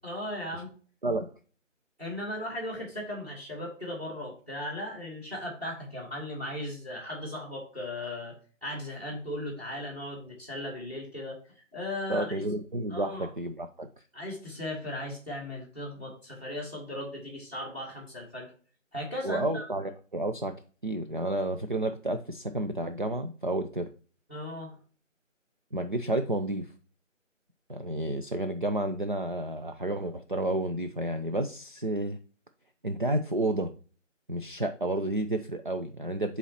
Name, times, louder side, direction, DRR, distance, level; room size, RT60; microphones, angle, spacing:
voice 1, 0.0-0.7 2.0-8.4 8.6-11.4 11.7-12.4 12.9-13.3 14.1-18.5 18.9-19.7 24.3-24.7, left 1 dB, 10° right, -7 dB, 1.4 m, -37 dB
voice 2, 12.1-13.9 19.2-20.5 20.8-23.9 25.7-26.7 27.7-32.2 32.8-33.7 34.3-36.4, right 1 dB, 40° right, 6 dB, 0.4 m, -31 dB
11.0 x 4.2 x 2.8 m, 0.39 s
figure-of-eight pair, 160°, 39 cm